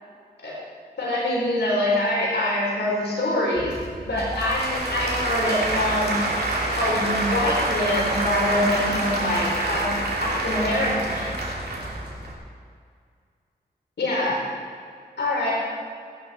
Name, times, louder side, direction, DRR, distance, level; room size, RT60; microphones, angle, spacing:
voice 1, 1.0-3.7 4.0-6.1 6.8-9.8 10.2-11.3 14.0-14.4 15.2-15.5, left 1 dB, 85° left, -5 dB, 4.2 m, -24 dB
Applause / Crowd, 3.6-12.3, right 1 dB, 70° right, 2.7 m, -27 dB
19.0 x 10.5 x 4.3 m, 2.2 s
cardioid pair, 40°, 17 cm